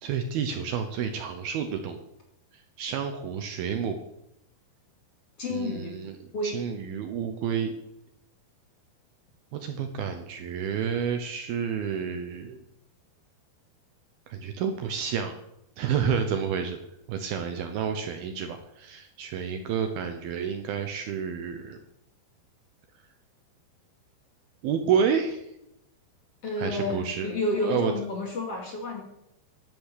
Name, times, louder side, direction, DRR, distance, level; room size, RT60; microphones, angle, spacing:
voice 1, 0.0-2.0 2.8-4.0 5.5-6.1 6.4-7.7 9.5-12.6 14.3-15.3 15.8-16.8 17.1-21.8 24.6-25.5 26.6-27.3 27.6-27.9, right 7 dB, 70° right, 6 dB, 2.5 m, -29 dB
voice 2, 5.4-5.9 6.3-6.6 26.4-29.0, left 2 dB, 40° left, 0 dB, 2.8 m, -30 dB
12.0 x 10.5 x 8.4 m, 0.83 s
omnidirectional pair, 5.2 m